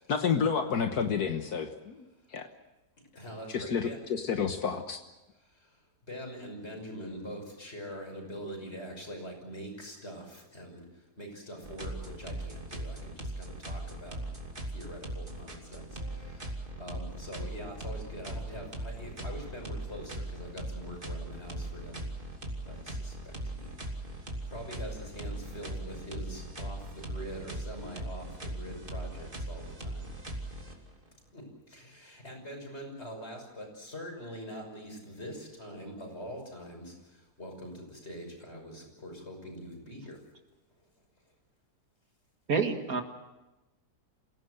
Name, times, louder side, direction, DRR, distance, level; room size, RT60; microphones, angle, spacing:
voice 1, 0.1-2.5 3.5-5.0, left 6 dB, 70° left, 6 dB, 1.7 m, -30 dB
voice 2, 3.2-4.0 6.1-10.8 11.2-14.2 14.7-15.9 16.8-22.0 22.6-23.1 23.5-23.7 24.5-29.9 31.3-31.4 31.7-36.9 37.4-40.2, equal, 40° left, 2 dB, 6.3 m, -43 dB
sound 1, 11.6-31.1, right 1 dB, 30° right, 3.0 m, -39 dB
voice 3, 42.5-43.0, right 5 dB, 60° right, 5 dB, 2.2 m, -28 dB
27.5 x 17.0 x 7.9 m, 1.0 s
omnidirectional pair, 1.7 m